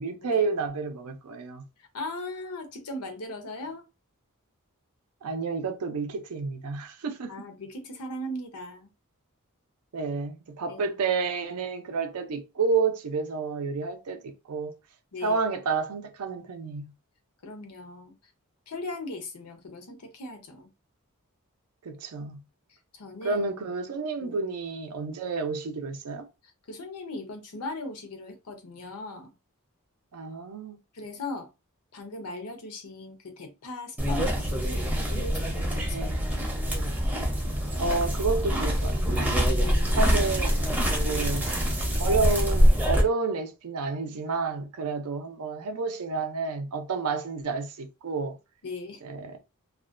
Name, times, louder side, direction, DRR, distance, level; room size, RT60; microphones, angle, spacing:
voice 1, 0.0-1.6 5.2-7.3 9.9-14.7 15.2-16.9 21.8-22.4 23.2-26.3 30.1-30.8 35.9-36.2 37.8-39.4 40.0-40.6 41.0-41.4 42.0-48.4 49.0-49.4, right 4 dB, 85° right, 0.5 m, -30 dB
voice 2, 1.8-3.8 7.3-8.9 10.7-11.0 15.1-15.4 17.4-18.1 18.7-20.7 22.9-23.4 24.2-24.4 26.4-29.3 30.9-31.5 31.9-36.3 36.7-36.9 39.6-40.1 41.0-42.2 48.6-49.0, left 2 dB, 85° left, 0.6 m, -39 dB
sound 1, 34.0-43.0, equal, 5° right, 0.5 m, -25 dB
2.3 x 2.1 x 2.4 m
head